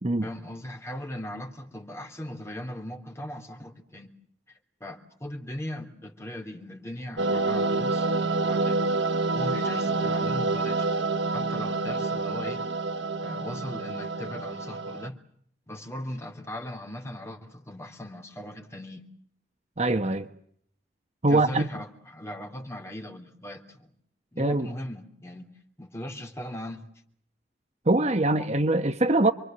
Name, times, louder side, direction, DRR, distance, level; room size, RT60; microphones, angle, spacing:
voice 1, 0.2-4.1 4.5-8.8 9.3-10.9 11.3-12.6 13.2-15.2 15.7-19.0 21.3-23.9 24.3-25.5 25.8-26.8, left 1 dB, 15° left, 3.2 m, -38 dB
sound 1, 7.2-15.1, right 3 dB, 90° right, 1.0 m, -27 dB
voice 2, 19.8-20.3 21.2-21.7 24.4-24.7 27.9-29.3, right 2 dB, 35° right, 1.0 m, -23 dB
28.0 x 23.5 x 7.8 m
head